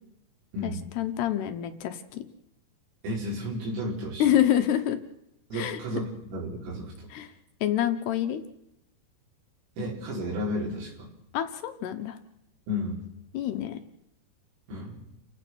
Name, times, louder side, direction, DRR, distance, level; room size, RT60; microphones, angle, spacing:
voice 1, 0.6-2.2 4.2-5.0 5.5-5.8 7.1-7.3 7.6-8.4 11.3-12.2 13.3-13.8, left 11 dB, 70° left, 8 dB, 2.7 m, -27 dB
voice 2, 3.0-4.4 5.5-7.1 9.8-11.1 12.7-13.1 14.7-15.0, left 1 dB, 85° right, -5 dB, 7.4 m, -33 dB
30.0 x 16.5 x 6.3 m, 0.83 s
omnidirectional pair, 5.7 m